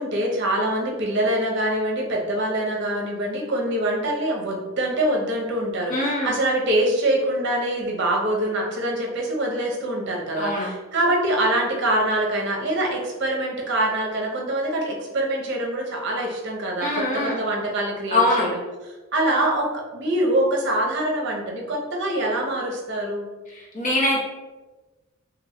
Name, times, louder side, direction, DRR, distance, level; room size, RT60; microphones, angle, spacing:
voice 1, 0.0-18.6 19.1-23.3, right 1 dB, 60° right, -1 dB, 0.7 m, -24 dB
voice 2, 5.9-6.3 10.4-10.7 16.8-17.4 18.1-18.5 23.5-24.2, left 1 dB, 40° left, -5 dB, 0.9 m, -23 dB
3.0 x 2.9 x 2.6 m, 1.2 s
head